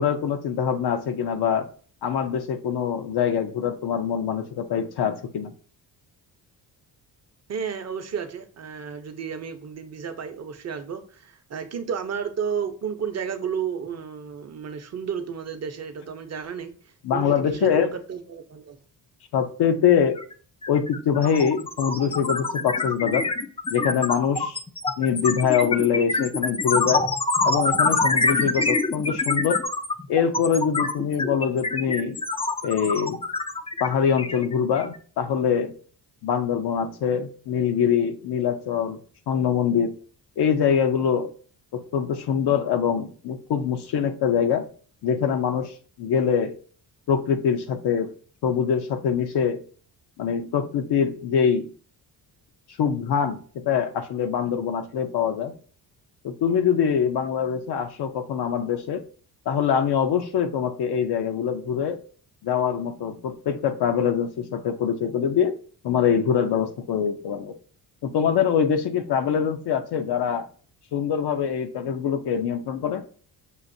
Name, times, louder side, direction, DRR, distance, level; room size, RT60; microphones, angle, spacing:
voice 1, 0.0-1.7 2.0-5.5 17.0-17.9 19.3-20.2 20.7-23.3 23.7-24.6 25.0-27.1 27.4-29.7 30.1-32.2 32.6-33.2 33.8-35.7 36.2-39.0 39.3-39.9 40.4-41.3 41.7-44.7 45.0-46.6 47.1-48.1 48.4-49.6 50.2-51.7 52.8-55.5 56.2-59.0 59.5-62.0 62.4-65.6 65.8-67.5 68.0-70.5 70.9-73.0, left 7 dB, 65° left, 0.6 m, -24 dB
voice 2, 7.5-16.7 17.1-18.8, right 7 dB, 35° right, 0.7 m, -32 dB
sound 1, 20.2-20.3 20.6-35.0, left 3 dB, 15° left, 0.4 m, -25 dB
6.5 x 2.5 x 2.6 m
cardioid pair, 90°, 43 cm